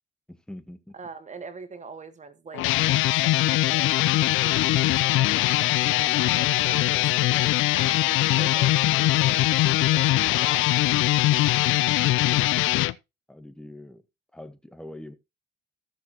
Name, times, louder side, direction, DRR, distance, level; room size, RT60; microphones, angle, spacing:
voice 1, 0.3-0.9 13.3-14.0 14.3-15.2, left 1 dB, 5° left, 1.2 m, -43 dB
voice 2, 0.9-10.7, right 4 dB, 35° right, 1.2 m, -43 dB
sound 1, 2.5-12.9, left 17 dB, 90° left, 0.4 m, -22 dB
14.5 x 6.5 x 2.9 m
cardioid pair, 90°, 20 cm